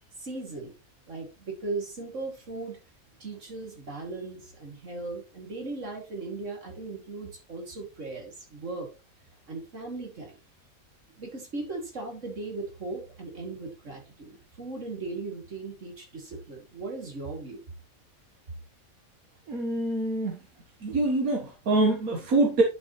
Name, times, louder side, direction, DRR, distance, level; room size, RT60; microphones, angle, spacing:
voice 1, 0.2-0.7 1.1-2.8 3.2-8.9 9.5-10.4 11.2-17.6, right 3 dB, 60° right, 1 dB, 2.7 m, -38 dB
voice 2, 19.5-20.4 20.8-22.6, right 2 dB, 80° right, 1 dB, 1.8 m, -25 dB
10.5 x 5.4 x 3.0 m, 0.30 s
omnidirectional pair, 1.5 m